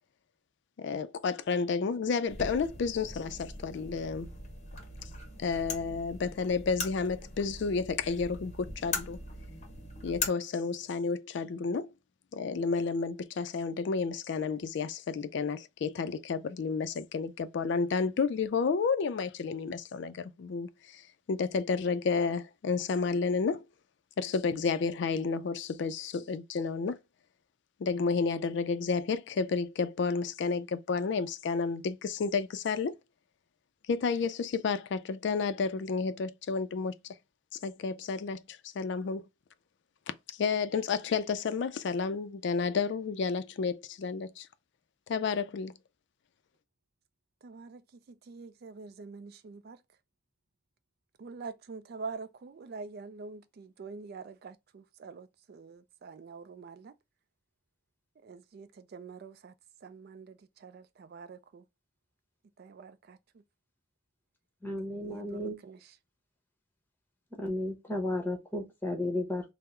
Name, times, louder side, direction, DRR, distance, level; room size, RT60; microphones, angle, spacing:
voice 1, 0.8-4.3 5.4-9.2 10.0-11.9 12.3-23.6 24.2-27.0 27.8-32.9 33.9-36.9 37.6-39.2 40.3-44.5 45.1-45.7, left 5 dB, 60° left, 0.4 m, -31 dB
sound 1, 2.3-10.3, left 3 dB, 35° left, 0.7 m, -40 dB
voice 2, 47.4-47.8 48.3-49.8 51.2-56.9 58.2-59.5 59.8-61.6 62.6-63.2 65.0-65.8, right 4 dB, 50° right, 0.3 m, -45 dB
voice 3, 64.6-65.6 67.3-69.5, left 1 dB, 10° left, 0.9 m, -33 dB
3.6 x 2.0 x 4.2 m
head